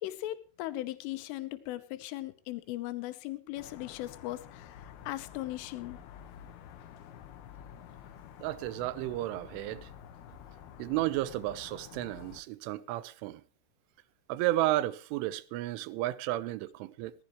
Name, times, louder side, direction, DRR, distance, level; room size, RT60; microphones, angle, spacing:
voice 1, 0.0-6.0, left 16 dB, 85° left, 3.6 m, -38 dB
sound 1, 3.6-12.4, left 9 dB, 70° left, 2.6 m, -50 dB
voice 2, 8.4-9.9 10.8-13.4 14.3-17.1, right 15 dB, 85° right, 3.3 m, -32 dB
19.5 x 15.0 x 3.1 m
omnidirectional pair, 5.6 m